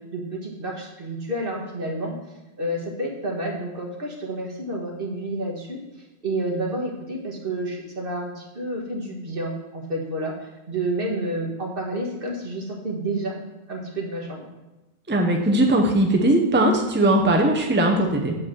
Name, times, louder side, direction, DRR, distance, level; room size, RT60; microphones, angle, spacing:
voice 1, 0.1-2.1 2.6-5.8 6.2-13.4 13.7-14.4, right 1 dB, 60° right, -1 dB, 1.7 m, -29 dB
voice 2, 15.1-18.4, right 1 dB, 10° right, 1 dB, 0.8 m, -19 dB
7.2 x 4.9 x 6.2 m, 1.1 s
omnidirectional pair, 1.1 m